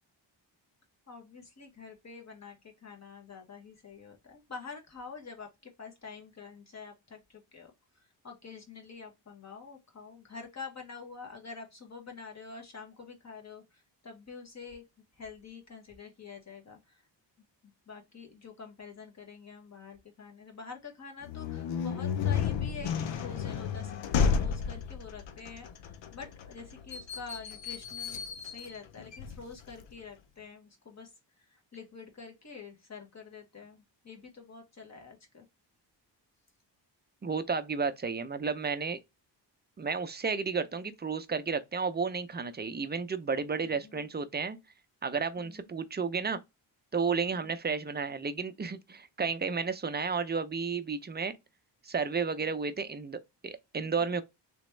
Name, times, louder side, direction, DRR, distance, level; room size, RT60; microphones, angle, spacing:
voice 1, 1.1-14.8 15.1-17.0 17.6-35.5 43.6-44.1 45.4-45.7 47.3-47.6 53.8-54.2, left 5 dB, 35° left, 1.3 m, -47 dB
sound 1, 21.2-29.9, left 6 dB, 80° left, 0.6 m, -32 dB
voice 2, 37.2-39.0 39.8-44.6 45.0-46.4 46.9-51.3 51.8-54.2, right 5 dB, 25° right, 0.5 m, -32 dB
3.5 x 3.0 x 3.1 m
cardioid pair, 85°, 44 cm